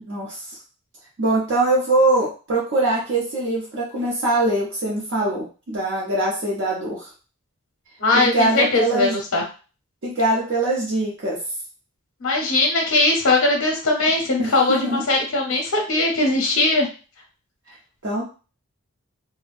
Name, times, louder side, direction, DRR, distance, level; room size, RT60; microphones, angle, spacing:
voice 1, 0.1-0.4 1.2-7.1 8.1-9.1 10.0-11.4 14.4-15.0 18.0-18.3, right 2 dB, 55° right, -5 dB, 0.6 m, -22 dB
voice 2, 8.0-9.4 12.2-16.9, left 2 dB, 65° left, 1 dB, 0.7 m, -20 dB
2.6 x 2.0 x 2.3 m, 0.35 s
head